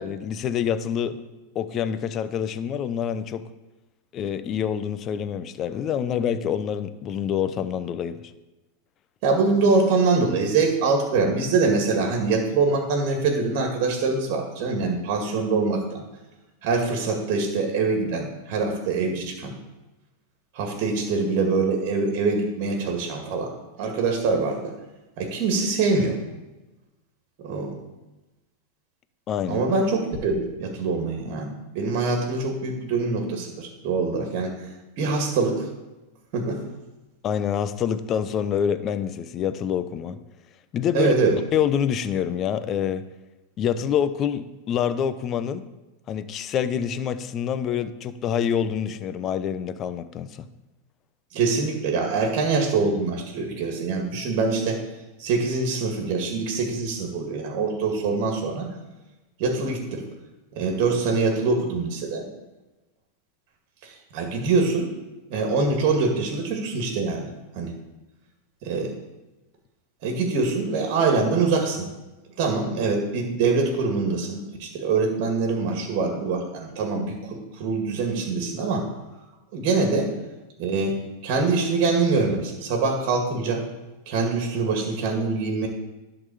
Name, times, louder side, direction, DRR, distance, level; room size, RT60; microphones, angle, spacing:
voice 1, 0.0-1.2 1.5-3.5 4.1-8.2 29.3-29.6 37.2-40.2 40.7-41.1 41.5-43.0 43.6-45.6 46.1-50.5, left 8 dB, 35° left, 12 dB, 0.6 m, -26 dB
voice 2, 9.2-16.0 16.6-19.5 20.5-24.7 25.2-26.2 27.4-27.8 29.5-34.5 35.0-35.7 36.3-36.6 40.9-41.3 51.3-54.8 55.2-58.7 59.4-60.0 60.5-62.3 63.8-64.9 65.3-67.3 67.5-67.7 68.6-69.0 70.0-71.9 72.4-78.8 79.5-80.1 80.6-83.6 84.1-85.7, right 4 dB, 55° right, 2 dB, 1.9 m, -24 dB
11.0 x 4.0 x 6.9 m, 1.1 s
hypercardioid pair, 100°, 0 cm